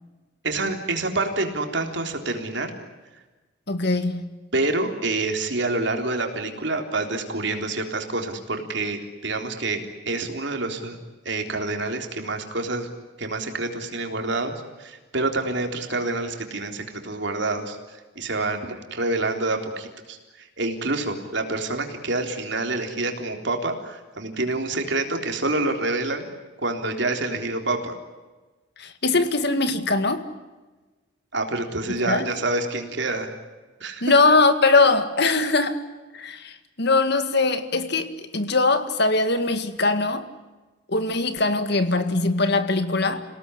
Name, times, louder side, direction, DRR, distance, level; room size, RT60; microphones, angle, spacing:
voice 1, 0.4-2.7 4.5-11.0 11.3-12.9 13.2-14.5 14.8-26.3 26.6-28.0 31.3-33.3 33.8-34.2, right 2 dB, 60° right, 4 dB, 3.7 m, -27 dB
voice 2, 3.7-4.3 28.8-30.3 32.1-32.2 34.0-35.8 36.1-40.3 40.9-43.2, left 3 dB, 55° left, 10 dB, 2.0 m, -21 dB
28.5 x 18.0 x 9.9 m, 1.2 s
head